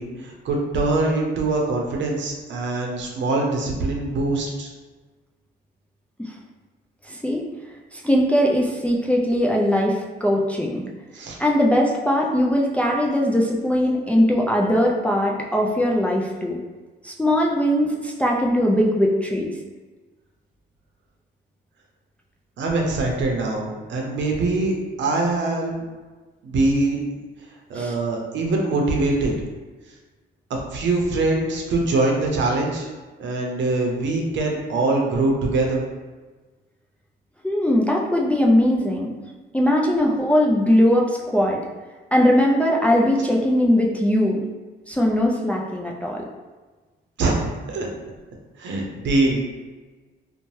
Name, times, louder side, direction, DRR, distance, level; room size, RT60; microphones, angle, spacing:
voice 1, 0.0-4.7 11.1-11.4 22.6-24.7 25.0-25.8 26.4-27.0 27.7-29.3 30.5-32.9 33.2-35.8 47.2-47.9 48.6-49.4, right 2 dB, 65° right, 0 dB, 0.7 m, -23 dB
voice 2, 7.0-7.4 7.9-10.8 11.4-16.6 17.0-19.5 27.7-27.9 37.4-39.1 39.5-41.6 42.1-44.4 44.9-46.3, equal, 5° left, -2 dB, 0.3 m, -20 dB
2.7 x 2.2 x 3.1 m, 1.3 s
cardioid pair, 90°, 20 cm